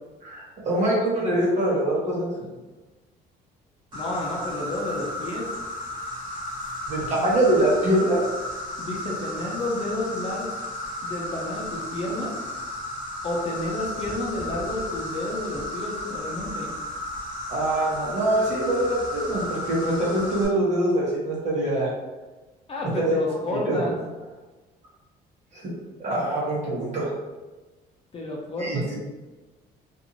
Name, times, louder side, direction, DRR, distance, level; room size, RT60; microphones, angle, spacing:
voice 1, 0.2-2.3 6.9-8.2 17.5-21.9 23.0-23.2 23.7-23.9 25.5-25.7 26.0-27.1 28.6-29.0, right 1 dB, 45° right, -5 dB, 1.1 m, -24 dB
voice 2, 3.9-5.5 8.8-10.5 11.0-12.3 13.2-16.7 22.7-24.0 28.1-29.0, left 1 dB, 35° left, -2 dB, 0.7 m, -31 dB
Insect, 3.9-20.5, left 1 dB, 25° right, 1.5 m, -34 dB
2.6 x 2.5 x 2.9 m, 1.2 s
cardioid pair, 110°, 17 cm